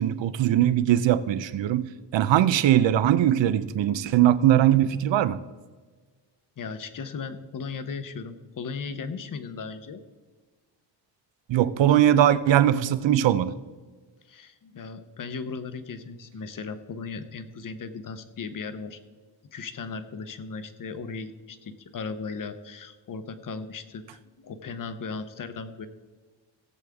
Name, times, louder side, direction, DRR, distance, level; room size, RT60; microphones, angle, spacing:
voice 1, 0.0-5.4 11.5-13.5, right 11 dB, 70° right, 15 dB, 0.6 m, -21 dB
voice 2, 6.6-10.0 14.2-19.0 19.5-25.9, left 4 dB, 45° left, 10 dB, 0.8 m, -37 dB
17.5 x 8.0 x 3.5 m, 1.4 s
wide cardioid pair, 170°, 46 cm